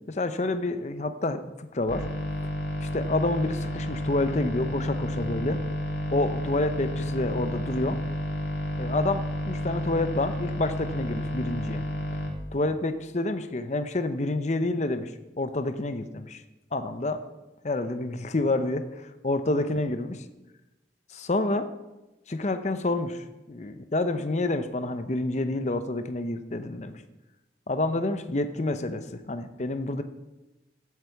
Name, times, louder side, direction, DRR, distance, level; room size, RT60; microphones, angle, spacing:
voice 1, 0.1-1.4 1.7-2.0 2.8-5.6 6.1-8.0 8.8-11.8 12.5-15.1 15.4-16.4 16.7-17.2 17.6-20.1 21.1-21.7 22.3-27.0 27.7-30.0, left 2 dB, 40° left, 9 dB, 0.7 m, -28 dB
sound 1, 1.9-12.3, equal, 90° left, 2.7 m, -31 dB
15.0 x 8.2 x 4.7 m, 1.0 s
head